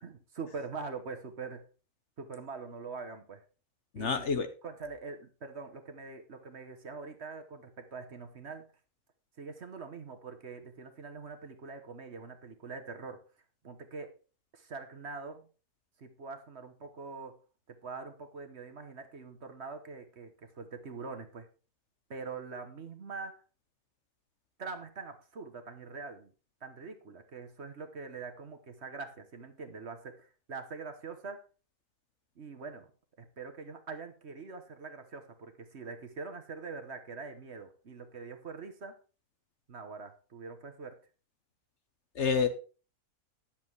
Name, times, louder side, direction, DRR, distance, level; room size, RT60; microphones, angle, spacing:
voice 1, 0.0-1.6 2.2-3.4 3.9-4.2 4.6-8.6 9.4-13.2 13.6-14.1 14.5-15.5 16.0-17.4 17.7-21.5 22.1-23.4 24.6-26.3 26.6-31.4 32.4-32.9 33.2-39.0 39.7-41.0, right 4 dB, 50° right, 7 dB, 1.4 m, -43 dB
voice 2, 3.9-4.5 42.2-42.5, left 5 dB, 55° left, 9 dB, 1.2 m, -28 dB
10.5 x 7.6 x 4.6 m, 0.35 s
omnidirectional pair, 1.6 m